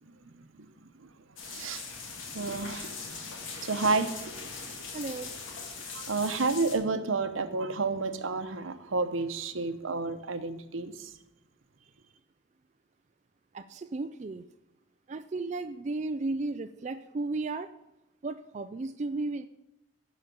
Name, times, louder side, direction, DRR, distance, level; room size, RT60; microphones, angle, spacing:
sound 1, 1.4-6.7, left 4 dB, 80° left, 2.0 m, -41 dB
voice 1, 1.4-3.3 3.6-4.3 5.8-11.1, right 3 dB, 80° right, 10 dB, 0.9 m, -31 dB
voice 2, 4.9-5.3 13.5-14.4 15.1-17.7 18.2-19.5, right 3 dB, 35° right, 9 dB, 0.4 m, -34 dB
11.0 x 5.1 x 7.0 m, 0.90 s
head